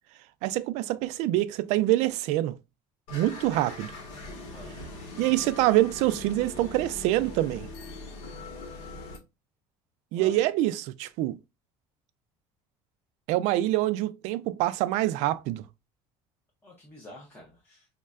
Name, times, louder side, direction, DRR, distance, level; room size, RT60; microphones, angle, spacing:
voice 1, 0.4-2.5 3.1-3.9 5.2-7.7 10.1-11.4 13.3-15.6, right 15 dB, 65° right, 0.4 m, -25 dB
sound 1, 3.1-9.2, left 2 dB, 70° left, 1.2 m, -41 dB
voice 2, 4.5-4.9 10.1-10.5 16.6-17.9, left 1 dB, 15° left, 0.8 m, -48 dB
5.3 x 2.1 x 2.4 m
cardioid pair, 165°, 12 cm